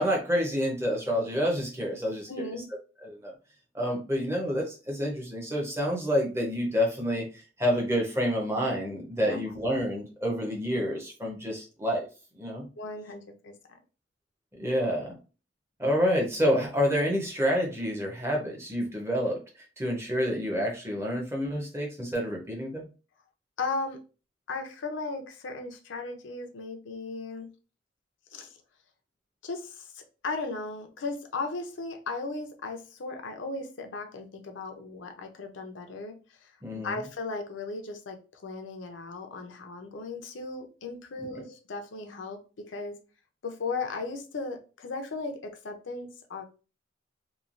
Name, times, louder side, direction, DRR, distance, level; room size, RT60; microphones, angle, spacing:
voice 1, 0.0-2.5 3.0-3.3 3.7-12.1 12.3-12.7 14.6-15.2 15.8-19.4 19.8-22.9 36.6-37.0, equal, 15° right, 0 dB, 0.6 m, -28 dB
voice 2, 2.3-2.7 9.2-9.4 12.8-13.5 23.6-24.0 24.5-27.5 28.3-28.5 29.4-36.1 36.4-36.5 36.7-43.0 43.4-46.4, left 3 dB, 75° left, 5 dB, 0.5 m, -36 dB
3.1 x 2.3 x 2.4 m, 0.33 s
head